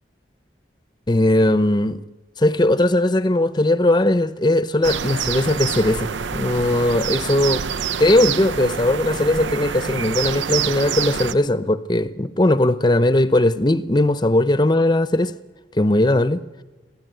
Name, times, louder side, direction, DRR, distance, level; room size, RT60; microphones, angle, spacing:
voice 1, 1.1-2.0 2.4-7.6 8.0-15.3 15.8-16.4, left 1 dB, 25° left, 0.7 m, -19 dB
sound 1, 4.8-11.3, right 7 dB, 85° right, 0.7 m, -26 dB
26.5 x 16.5 x 9.1 m
head